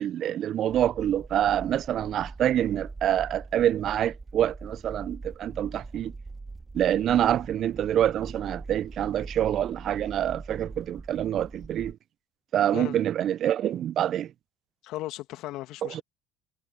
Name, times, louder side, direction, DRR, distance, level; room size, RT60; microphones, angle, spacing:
voice 1, 0.0-6.1 6.7-12.0 12.5-14.3 15.8-16.0, right 11 dB, 50° right, 0.7 m, -26 dB
sound 1, 0.7-11.9, right 3 dB, 20° right, 2.2 m, -42 dB
voice 2, 14.8-16.0, left 16 dB, 60° left, 2.4 m, -36 dB
hypercardioid pair, 65°, 0 cm